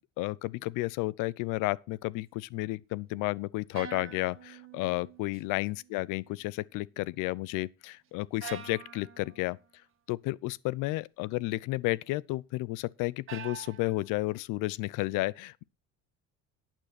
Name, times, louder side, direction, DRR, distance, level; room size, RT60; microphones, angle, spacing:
voice 1, 0.2-9.6 10.1-15.6, left 20 dB, 85° left, 0.6 m, -32 dB
sound 1, 3.7-5.4 5.7-6.3 8.4-9.6 13.3-14.4, right 7 dB, 40° right, 2.0 m, -46 dB
11.5 x 9.0 x 4.2 m
cardioid pair, 100°, 31 cm